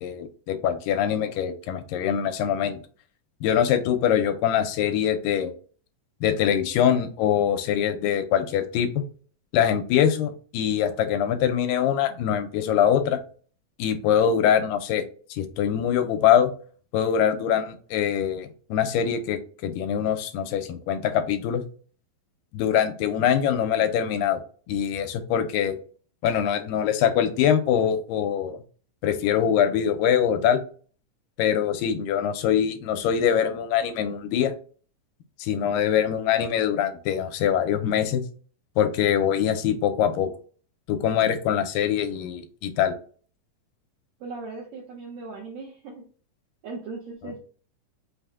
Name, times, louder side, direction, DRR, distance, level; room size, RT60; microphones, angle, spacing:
voice 1, 0.0-2.8 3.4-5.5 6.2-9.0 9.5-13.2 13.8-15.0 15.3-16.5 16.9-21.6 22.5-24.4 24.7-25.8 26.2-28.6 29.0-30.6 31.4-34.5 35.4-38.2 38.8-40.3 40.9-42.9, left 9 dB, 85° left, 7 dB, 2.2 m, -23 dB
voice 2, 44.2-46.1 46.6-47.4, right 3 dB, 75° right, -2 dB, 1.5 m, -38 dB
5.4 x 2.1 x 3.5 m, 0.42 s
omnidirectional pair, 3.9 m